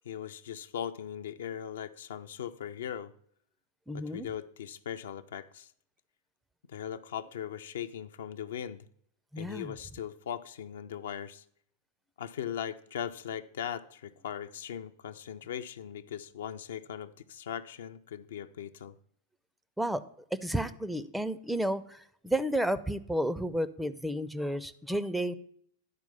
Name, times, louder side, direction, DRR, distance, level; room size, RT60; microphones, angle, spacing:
voice 1, 0.1-3.1 3.9-5.7 6.7-8.8 9.4-11.4 12.2-18.9, left 9 dB, 60° left, 10 dB, 0.4 m, -39 dB
voice 2, 3.9-4.3 9.3-9.8 19.8-20.0 20.3-25.3, right 1 dB, 5° right, 13 dB, 0.4 m, -32 dB
10.5 x 4.6 x 5.4 m, 0.64 s
figure-of-eight pair, 90°, 0 cm